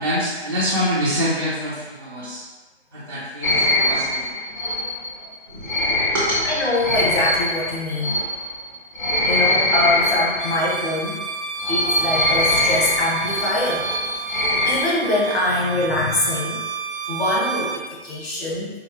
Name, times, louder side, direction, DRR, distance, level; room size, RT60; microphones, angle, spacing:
voice 1, 0.0-2.4 2.9-4.2 5.5-6.5, equal, 20° right, -11 dB, 0.4 m, -25 dB
sound 1, 3.4-11.0 11.6-14.8, left 1 dB, 45° left, 0.6 m, -23 dB
voice 2, 6.4-8.2 9.2-11.2 11.7-13.9 14.3-16.6 17.1-18.7, left 1 dB, 65° left, -5 dB, 1.3 m, -24 dB
Bowed string instrument, 10.4-17.9, right 5 dB, 85° right, 0.6 m, -30 dB
4.6 x 2.0 x 2.8 m, 1.2 s
figure-of-eight pair, 150°, 33 cm